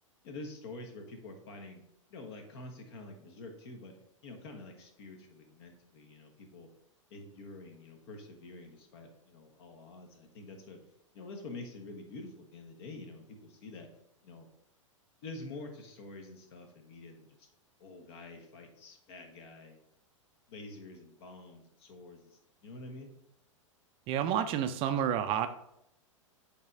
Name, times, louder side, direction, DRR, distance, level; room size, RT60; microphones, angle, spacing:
voice 1, 0.2-1.8 2.1-3.9 4.2-6.7 7.1-10.8 11.1-13.9 14.2-14.5 15.2-17.5 17.8-19.8 20.5-23.1, left 2 dB, 50° left, 4 dB, 1.3 m, -47 dB
voice 2, 24.1-25.5, right 9 dB, 35° right, 9 dB, 0.4 m, -29 dB
7.9 x 3.3 x 3.6 m, 0.76 s
figure-of-eight pair, 100°, 17 cm